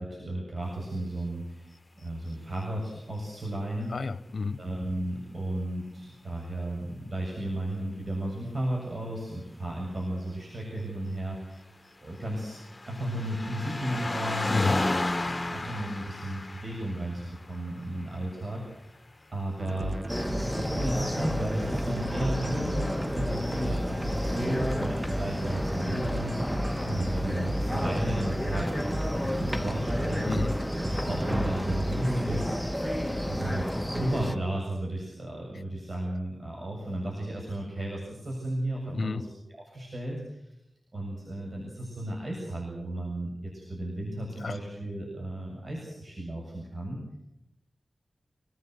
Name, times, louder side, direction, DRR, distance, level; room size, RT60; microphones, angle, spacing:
voice 1, 0.0-1.7 2.0-3.9 4.6-11.7 12.0-12.6 12.9-14.9 15.2-18.6 19.3-20.0 20.3-30.3 31.0-32.5 33.3-33.7 33.9-39.3 39.7-40.4 40.9-47.0, right 1 dB, 55° right, -2 dB, 7.3 m, -34 dB
voice 2, 3.9-4.6 14.5-14.8 30.3-30.6 38.9-39.3 44.4-44.6, left 4 dB, 70° left, 14 dB, 0.9 m, -30 dB
sound 1, 11.8-18.4 19.4-19.5, left 2 dB, 30° left, 1.6 m, -33 dB
sound 2, 19.6-32.6, right 1 dB, 25° right, 0.9 m, -35 dB
sound 3, 20.1-34.4, equal, ahead, 1.6 m, -31 dB
26.5 x 17.0 x 8.1 m, 0.85 s
cardioid pair, 40°, 0 cm